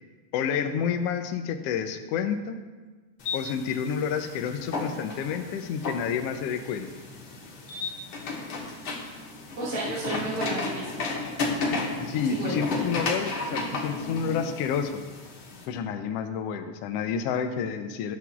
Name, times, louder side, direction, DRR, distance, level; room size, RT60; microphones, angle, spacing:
voice 1, 0.3-2.6 3.3-6.9 12.0-15.0 15.7-18.2, left 7 dB, 80° left, 6 dB, 1.4 m, -29 dB
sound 1, 3.2-15.7, left 3 dB, 55° left, 1.9 m, -33 dB
voice 2, 9.6-11.0 12.3-12.9, right 2 dB, 55° right, -11 dB, 3.0 m, -32 dB
18.5 x 7.5 x 2.4 m, 1.3 s
omnidirectional pair, 3.3 m